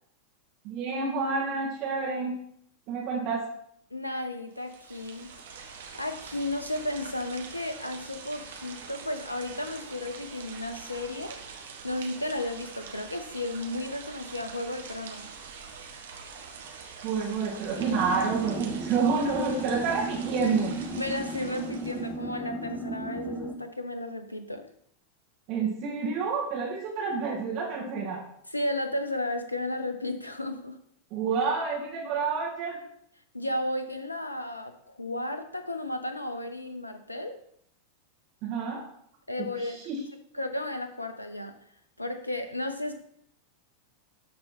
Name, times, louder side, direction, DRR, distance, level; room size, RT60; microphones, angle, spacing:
voice 1, 0.6-2.4 2.9-3.5 17.0-20.7 25.5-28.2 31.1-32.8 38.4-38.8 39.4-40.0, right 5 dB, 40° right, -4 dB, 2.0 m, -29 dB
voice 2, 3.9-5.3 5.9-11.4 11.8-15.3 21.0-24.7 28.5-30.8 33.3-37.4 39.3-39.8 40.3-41.5 42.0-42.9, left 1 dB, 85° left, 8 dB, 0.6 m, -33 dB
sound 1, 4.5-22.1, right 5 dB, 60° right, 1.4 m, -44 dB
sound 2, 17.8-23.6, right 2 dB, ahead, 1.3 m, -35 dB
12.5 x 4.2 x 4.4 m, 0.70 s
figure-of-eight pair, 90°, 0 cm